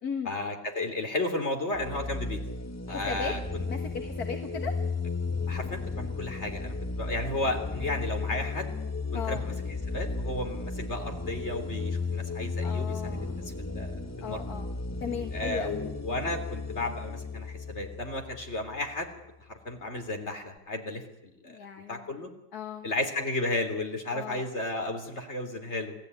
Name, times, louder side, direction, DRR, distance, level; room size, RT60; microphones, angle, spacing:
voice 1, 0.2-2.4 2.9-3.6 5.5-8.7 9.1-14.4 15.3-19.1 19.5-22.3 22.8-26.0, left 2 dB, 40° left, 4 dB, 3.7 m, -34 dB
sound 1, 1.7-19.1, left 3 dB, 15° left, 0.5 m, -34 dB
voice 2, 2.9-3.3 3.7-4.7 9.1-9.4 12.6-13.4 14.2-14.7 15.0-15.8 21.5-22.1 22.5-22.9 24.1-24.5, left 6 dB, 65° left, 5 dB, 2.1 m, -36 dB
29.0 x 18.5 x 9.7 m, 0.90 s
omnidirectional pair, 1.8 m